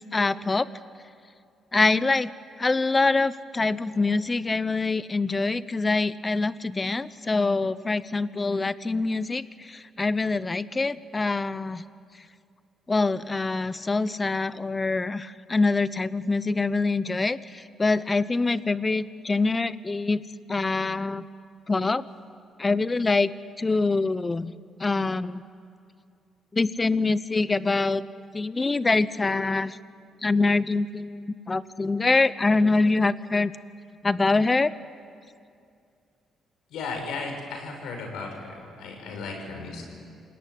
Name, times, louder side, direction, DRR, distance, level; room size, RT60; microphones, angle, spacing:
voice 1, 0.1-0.7 1.7-2.3 2.6-11.8 12.9-20.2 20.5-21.2 21.7-22.1 22.6-23.3 23.6-24.5 24.8-25.4 26.5-28.0 28.3-29.8 30.2-33.5 34.0-34.7, left 3 dB, 25° left, 16 dB, 0.8 m, -24 dB
voice 2, 36.7-39.8, left 4 dB, 85° left, 3 dB, 6.1 m, -35 dB
27.5 x 18.0 x 9.6 m, 2.4 s
cardioid pair, 90°, 0 cm